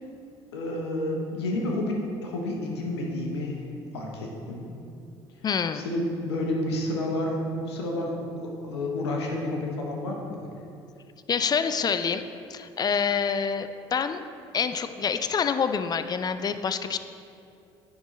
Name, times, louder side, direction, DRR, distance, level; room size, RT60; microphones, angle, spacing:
voice 1, 0.5-3.6 3.9-4.7 5.7-10.4, left 1 dB, 85° left, 0 dB, 0.8 m, -30 dB
voice 2, 5.4-5.9 11.3-12.2 12.5-14.2 14.5-17.0, left 6 dB, 30° left, 10 dB, 0.3 m, -26 dB
9.7 x 3.8 x 3.1 m, 2.6 s
hypercardioid pair, 60°, 13 cm